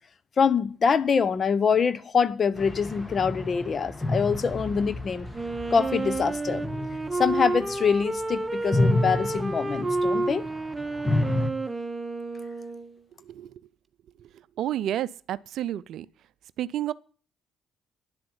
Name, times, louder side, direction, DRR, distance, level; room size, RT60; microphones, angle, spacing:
voice 1, 0.4-5.3 5.7-6.7 7.1-10.5, left 6 dB, 45° left, 0.9 m, -24 dB
sound 1, 2.6-8.2 8.5-11.5, left 2 dB, 15° left, 2.1 m, -30 dB
Wind instrument woodwind instrument, 5.3-13.0, right 2 dB, 20° right, 1.1 m, -30 dB
voice 2, 13.2-13.6 14.2-14.3 14.6-16.1 16.6-16.9, right 12 dB, 65° right, 0.5 m, -30 dB
10.5 x 7.7 x 7.3 m
hypercardioid pair, 55°, 0 cm